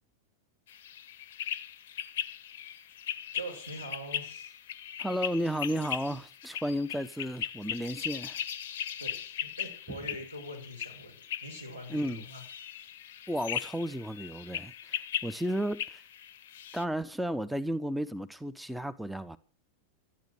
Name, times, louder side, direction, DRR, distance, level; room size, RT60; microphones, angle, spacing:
sound 1, 0.7-16.8, left 10 dB, 60° left, 0.7 m, -39 dB
voice 1, 3.3-4.5 9.0-12.4, equal, 85° right, 5.5 m, -43 dB
voice 2, 5.0-8.4 9.9-10.0 11.9-12.2 13.3-16.0 16.7-19.4, equal, ahead, 0.7 m, -33 dB
12.5 x 9.9 x 6.5 m
figure-of-eight pair, 90°, 0 cm